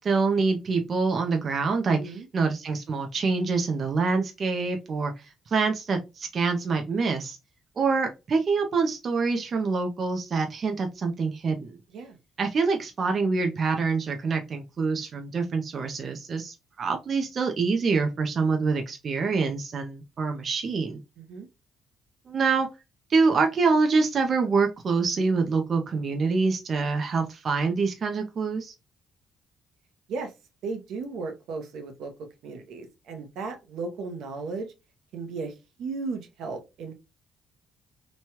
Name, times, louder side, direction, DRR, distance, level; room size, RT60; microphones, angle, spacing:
voice 1, 0.0-7.4 7.8-11.8 12.4-21.0 22.3-22.7 23.1-28.7, right 4 dB, 45° right, 4 dB, 0.5 m, -26 dB
voice 2, 1.9-2.3 11.9-12.2 21.2-21.5 30.1-30.3 30.6-32.1 32.4-34.7 35.1-36.9, right 4 dB, 80° right, 5 dB, 0.7 m, -35 dB
3.0 x 2.2 x 2.8 m, 0.25 s
cardioid pair, 110°, 0 cm